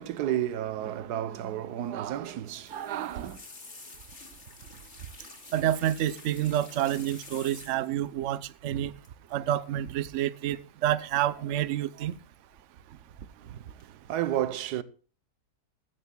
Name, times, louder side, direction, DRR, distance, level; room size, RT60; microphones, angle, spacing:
voice 1, 0.0-3.4 13.4-13.5 13.7-14.8, right 11 dB, 85° right, 1.3 m, -32 dB
sound 1, 2.5-8.1 9.0-9.3 9.6-9.9 11.1-11.7 12.0-12.6 13.0-13.4 13.8-13.9, left 3 dB, 45° left, 2.5 m, -49 dB
voice 2, 5.5-8.9 9.3-12.1, right 12 dB, 60° right, 0.9 m, -28 dB
16.5 x 13.5 x 2.2 m
omnidirectional pair, 1.7 m